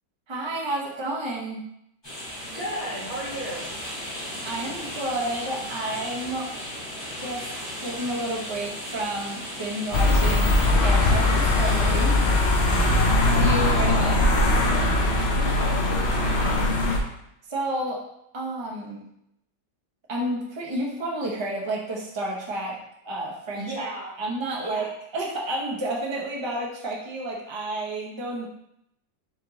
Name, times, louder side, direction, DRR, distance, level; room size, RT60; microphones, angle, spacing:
voice 1, 0.3-1.6 4.4-6.5 7.1-7.5 7.8-12.2 13.2-14.2 17.5-18.0 18.3-19.0 20.1-22.8 23.0-23.9 24.2-28.5, right 1 dB, 50° right, -3 dB, 0.3 m, -30 dB
sound 1, 2.0-13.4, equal, 15° left, 1.6 m, -36 dB
voice 2, 2.5-3.7 15.4-16.7 23.5-24.1 24.6-24.9, equal, 20° right, -9 dB, 1.5 m, -34 dB
sound 2, 9.9-17.0, left 2 dB, 60° left, 0.6 m, -21 dB
4.3 x 3.7 x 3.0 m, 0.79 s
omnidirectional pair, 1.8 m